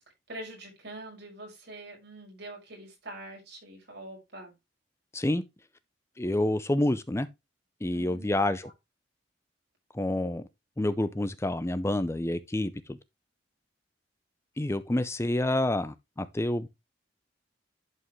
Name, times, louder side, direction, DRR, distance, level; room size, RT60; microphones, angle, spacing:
voice 1, 0.3-4.5 7.9-8.3 8.6-8.7, right 1 dB, 60° right, 5.7 m, -44 dB
voice 2, 6.2-7.3 7.8-8.7 9.9-10.4 10.8-13.0 14.6-16.7, left 1 dB, 15° left, 0.5 m, -28 dB
11.0 x 5.5 x 3.1 m
head